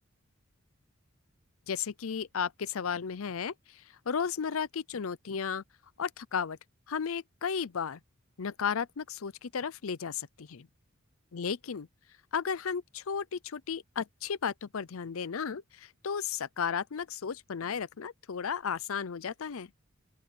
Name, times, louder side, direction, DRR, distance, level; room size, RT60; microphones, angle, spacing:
voice 1, 1.7-3.5 4.1-5.6 6.0-6.6 6.9-8.0 8.4-10.7 11.3-11.9 12.3-19.7, left 6 dB, 70° left, 0.6 m, -34 dB
open air
head